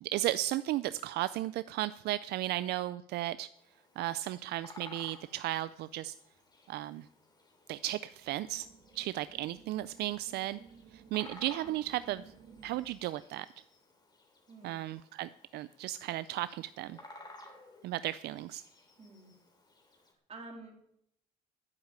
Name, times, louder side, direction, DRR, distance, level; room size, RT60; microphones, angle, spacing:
voice 1, 0.0-3.5 4.0-6.1 6.7-7.1 7.7-8.7 9.0-10.6 10.9-12.2 12.6-13.5 14.6-17.0 17.8-18.6, right 15 dB, 75° right, 15 dB, 0.4 m, -35 dB
Bird vocalization bird call bird song, 3.5-20.1, left 2 dB, 25° left, 3.0 m, -57 dB
sound 1, 8.2-13.2, right 7 dB, 55° right, 1.7 m, -57 dB
voice 2, 14.5-14.8 19.0-19.3 20.3-20.8, right 3 dB, 35° right, 2 dB, 3.2 m, -49 dB
10.5 x 7.3 x 8.9 m, 0.76 s
cardioid pair, 110°, 17 cm